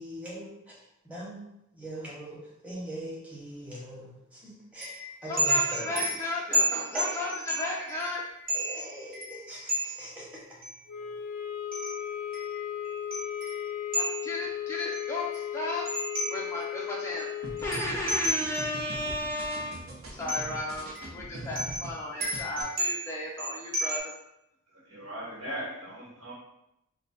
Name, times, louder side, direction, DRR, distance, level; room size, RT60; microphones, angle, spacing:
voice 1, 0.0-1.5 1.7-6.1 6.9-7.4 8.5-10.4, right 1 dB, 5° right, -6 dB, 0.9 m, -41 dB
sound 1, 4.8-10.0 10.6-10.7 11.7-14.4 14.9-16.8 17.2-17.3 17.6-18.8 19.3-19.4 20.3-20.6 20.9-24.0, right 1 dB, 40° right, 0.9 m, -32 dB
voice 2, 5.3-8.2 13.9-15.8 16.3-17.3 17.6-24.1, left 2 dB, 15° left, -4 dB, 0.3 m, -34 dB
sound 2, 10.9-17.9, left 10 dB, 90° left, 0.3 m, -36 dB
sound 3, 17.4-21.9 22.2-22.6, right 2 dB, 70° right, 0.8 m, -42 dB
voice 3, 24.8-26.3, equal, 85° right, -6 dB, 1.2 m, -38 dB
3.1 x 2.2 x 3.9 m, 0.85 s
head